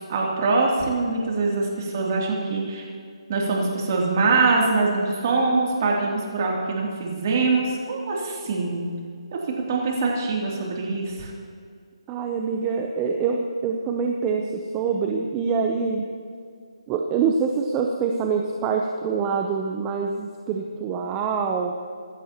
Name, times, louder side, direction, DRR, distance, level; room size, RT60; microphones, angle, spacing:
voice 1, 0.1-2.9 3.3-8.8 9.7-11.3, right 3 dB, 35° right, -2 dB, 2.8 m, -23 dB
voice 2, 12.1-16.0 16.9-21.7, right 5 dB, 15° right, 2 dB, 0.6 m, -25 dB
24.0 x 11.5 x 3.0 m, 2.2 s
hypercardioid pair, 170°, 3 cm